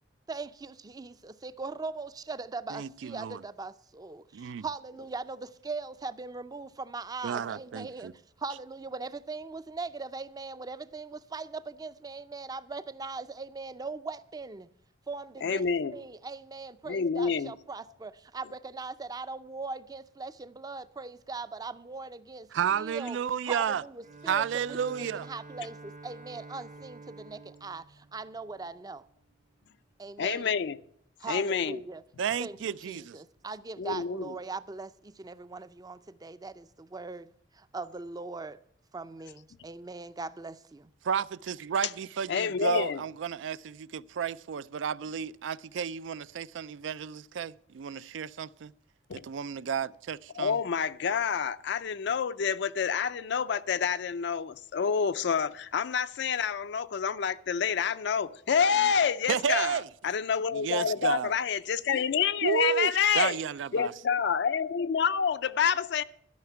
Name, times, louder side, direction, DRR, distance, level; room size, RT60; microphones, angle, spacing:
voice 1, 0.3-8.1 8.4-14.6 15.1-23.2 23.5-29.1 30.0-30.6 31.2-32.0 32.4-38.6 38.9-40.9, right 3 dB, 20° right, 0.4 m, -40 dB
voice 2, 2.7-3.4 4.3-4.6 7.2-8.1 22.5-23.8 24.3-25.3 32.2-33.2 41.0-48.7 49.2-50.6 59.3-59.8 60.5-61.3 62.4-63.9, right 7 dB, 80° right, 0.4 m, -32 dB
voice 3, 15.4-16.0 16.9-17.5 30.2-30.8 31.3-31.8 33.8-34.3 42.3-43.0 49.1-49.2 50.3-63.4 63.7-66.0, left 6 dB, 65° left, 0.4 m, -28 dB
Bowed string instrument, 24.0-29.1, right 3 dB, 45° right, 0.8 m, -49 dB
12.5 x 5.8 x 9.2 m
head